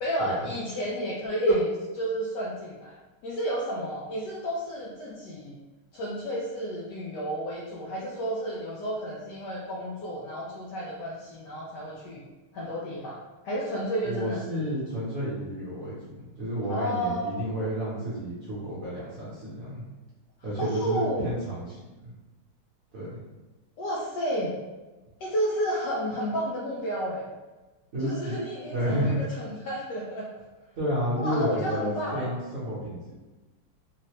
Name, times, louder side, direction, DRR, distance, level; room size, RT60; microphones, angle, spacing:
voice 1, 0.0-3.0 3.2-5.5 5.9-12.2 12.5-13.2 13.4-14.7 16.7-17.4 20.6-21.3 23.8-24.5 25.2-27.2 28.0-30.3 31.2-32.3, equal, 75° left, -5 dB, 1.0 m, -31 dB
voice 2, 14.0-19.9 20.4-22.1 22.9-23.2 27.9-28.3 28.7-29.2 30.8-33.2, equal, 50° right, -9 dB, 1.1 m, -31 dB
3.8 x 2.1 x 3.0 m, 1.2 s
omnidirectional pair, 2.3 m